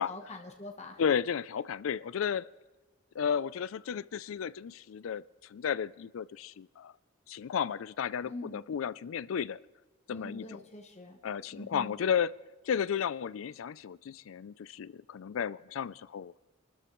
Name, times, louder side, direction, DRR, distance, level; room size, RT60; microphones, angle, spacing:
voice 1, 0.0-1.0 8.2-8.6 10.1-11.2 11.5-11.9, left 1 dB, 35° left, 2 dB, 1.1 m, -44 dB
voice 2, 1.0-2.5 3.1-5.2 5.5-6.9 7.3-9.6 10.1-10.6 11.2-12.3 12.6-16.5, left 7 dB, 90° left, 19 dB, 0.4 m, -33 dB
27.5 x 13.0 x 3.1 m, 1.2 s
head